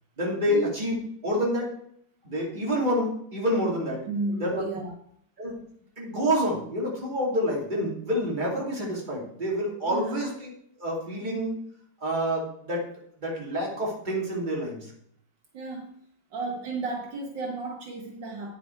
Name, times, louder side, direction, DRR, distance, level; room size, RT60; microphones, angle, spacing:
voice 1, 0.2-0.9 1.2-1.7 2.2-4.0 4.4-4.6 5.4-5.6 6.0-10.5 10.8-11.5 12.0-12.9 13.2-14.9, equal, 25° right, -3 dB, 2.7 m, -28 dB
voice 2, 4.1-4.9 9.8-10.2 15.5-15.9 16.3-18.5, right 3 dB, 70° right, 1 dB, 1.8 m, -33 dB
9.5 x 7.0 x 4.5 m, 0.67 s
omnidirectional pair, 2.1 m